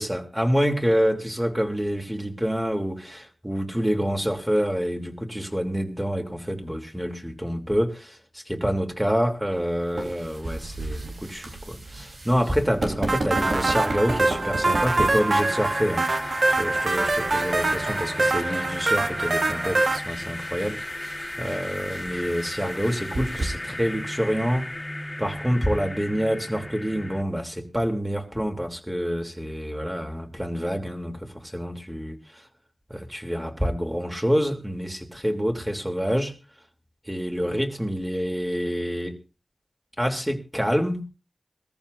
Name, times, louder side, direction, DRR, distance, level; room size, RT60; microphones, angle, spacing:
voice 1, 0.0-21.1 21.4-24.7 25.2-32.5 32.9-36.3 37.1-39.2 40.0-41.1, equal, 10° right, 3 dB, 3.2 m, -27 dB
sound 1, 9.5-23.5, right 2 dB, 80° right, 3.7 m, -36 dB
sound 2, 13.1-20.0, right 2 dB, 65° right, 1.5 m, -24 dB
sound 3, 15.3-27.2, left 1 dB, 30° left, 1.7 m, -35 dB
22.0 x 14.0 x 2.7 m, 0.30 s
cardioid pair, 45°, 0 cm